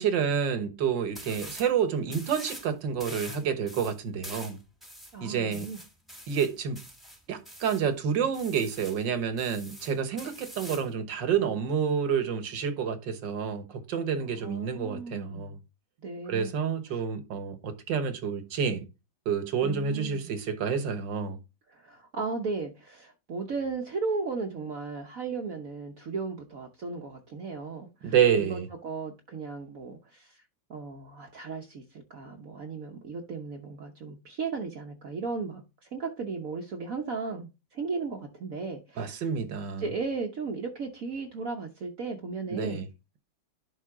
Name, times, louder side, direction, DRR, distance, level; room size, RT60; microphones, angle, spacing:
voice 1, 0.0-4.6 5.2-5.7 6.3-6.8 7.3-15.6 16.3-18.9 19.3-21.4 28.0-28.7 39.0-39.9 42.5-42.9, right 7 dB, 75° right, 1.8 m, -29 dB
sound 1, 1.1-1.7 2.1-2.7 3.0-7.9 8.3-9.0 9.4-10.9, equal, ahead, 1.6 m, -45 dB
voice 2, 5.1-5.8 14.4-15.5 16.0-16.7 19.6-20.3 21.7-30.4 30.7-35.6 35.9-39.2 39.8-42.8, right 4 dB, 55° right, 1.2 m, -36 dB
11.0 x 3.9 x 3.7 m
omnidirectional pair, 2.0 m